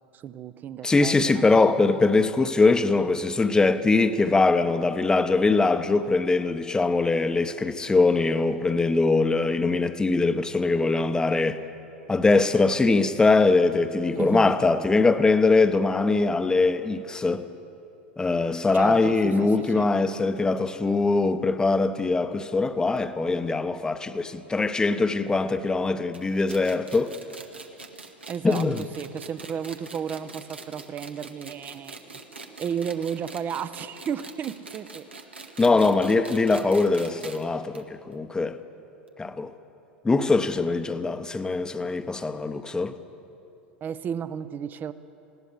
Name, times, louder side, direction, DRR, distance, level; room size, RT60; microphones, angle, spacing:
voice 1, 0.1-1.4 14.1-14.5 18.7-19.9 28.3-32.0 32.3-35.1 35.8-36.2 43.8-44.9, right 8 dB, 30° right, 0.7 m, -33 dB
voice 2, 0.8-11.6 12.1-17.5 18.2-27.1 28.4-28.8 35.6-38.6 39.2-39.5 40.0-43.0, left 3 dB, 10° left, 0.9 m, -22 dB
sound 1, 26.1-37.4 37.7-37.8 38.1-38.2 39.1-39.2, right 3 dB, 85° right, 1.3 m, -43 dB
20.5 x 16.5 x 8.2 m
figure-of-eight pair, 80°, 6 cm